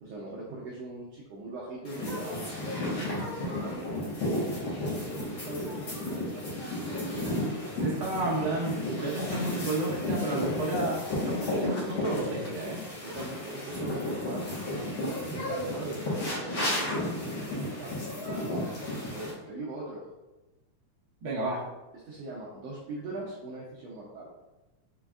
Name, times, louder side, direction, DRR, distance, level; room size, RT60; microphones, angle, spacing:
voice 1, 0.0-4.2 4.9-6.4 12.6-12.7 13.0-14.5 15.3-17.4 17.7-18.0 19.1-20.1 22.0-24.3, right 2 dB, 75° right, -5 dB, 1.6 m, -41 dB
sound 1, 1.9-19.3, left 1 dB, 50° left, 1.7 m, -33 dB
voice 2, 7.8-12.8 21.2-21.6, right 2 dB, 55° right, -5 dB, 1.3 m, -31 dB
6.1 x 3.3 x 2.4 m, 1.1 s
omnidirectional pair, 3.5 m